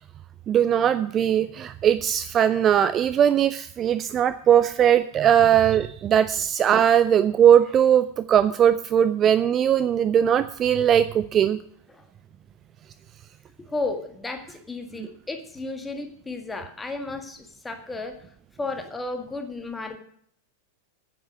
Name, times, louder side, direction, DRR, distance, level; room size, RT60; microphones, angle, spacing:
voice 1, 0.5-11.6, right 9 dB, 30° right, 13 dB, 0.5 m, -20 dB
voice 2, 13.6-18.2 18.6-20.0, left 3 dB, 10° left, 5 dB, 1.8 m, -33 dB
9.4 x 9.3 x 6.4 m, 0.64 s
figure-of-eight pair, 90°, 0 cm